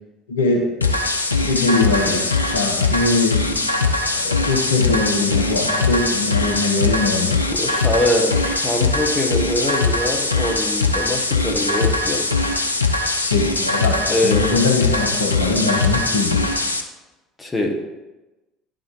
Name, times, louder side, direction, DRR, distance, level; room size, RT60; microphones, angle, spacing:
voice 1, 0.3-1.0 1.3-7.4 13.2-16.4, left 3 dB, 75° left, 1 dB, 1.0 m, -22 dB
sound 1, 0.8-16.8, left 3 dB, 90° left, 0.5 m, -21 dB
voice 2, 7.5-12.3 14.1-14.6 17.4-17.8, left 1 dB, 20° left, 1 dB, 1.4 m, -23 dB
10.5 x 4.0 x 3.2 m, 1.1 s
figure-of-eight pair, 65°, 0 cm